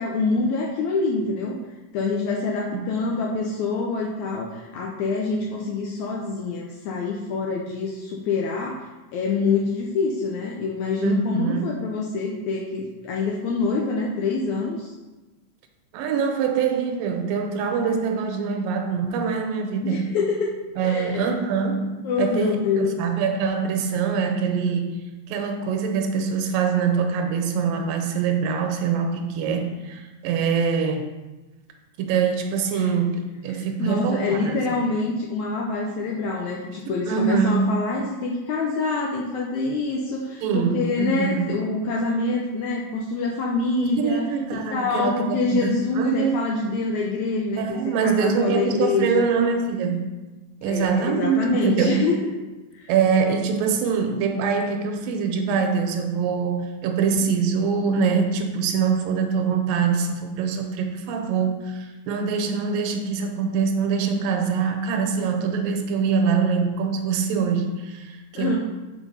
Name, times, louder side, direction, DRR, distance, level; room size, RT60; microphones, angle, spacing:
voice 1, 0.0-1.6 1.9-8.9 9.1-14.9 19.8-20.6 20.8-21.3 22.0-22.9 32.7-32.8 33.5-49.2 50.7-52.3 52.7-52.9 68.3-68.6, left 3 dB, 80° left, -1 dB, 1.7 m, -26 dB
voice 2, 11.0-11.7 15.9-20.1 20.8-24.9 25.3-31.1 32.0-34.6 36.9-37.7 40.4-41.6 44.0-46.4 47.6-50.1 50.6-52.0 52.9-68.6, right 6 dB, 80° right, 4 dB, 2.4 m, -24 dB
6.7 x 4.7 x 5.5 m, 1.1 s
omnidirectional pair, 4.0 m